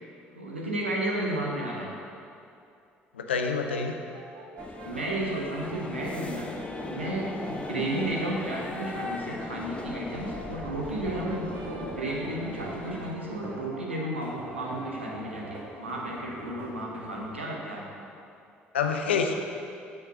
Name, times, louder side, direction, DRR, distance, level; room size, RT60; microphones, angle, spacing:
voice 1, 0.3-1.9 4.8-6.5 6.9-18.0, right 1 dB, 85° right, -3 dB, 1.2 m, -33 dB
voice 2, 3.1-4.0 18.7-19.3, left 5 dB, 75° left, 5 dB, 0.6 m, -27 dB
Brass instrument, 3.4-9.0 9.9-15.8, right 2 dB, 60° right, 1.1 m, -46 dB
sound 1, 4.6-13.1, left 2 dB, 20° left, 0.9 m, -38 dB
sound 2, 10.9-13.7 14.2-17.3, right 1 dB, 35° right, 2.3 m, -43 dB
8.8 x 6.5 x 5.6 m, 2.6 s
figure-of-eight pair, 55°, 6 cm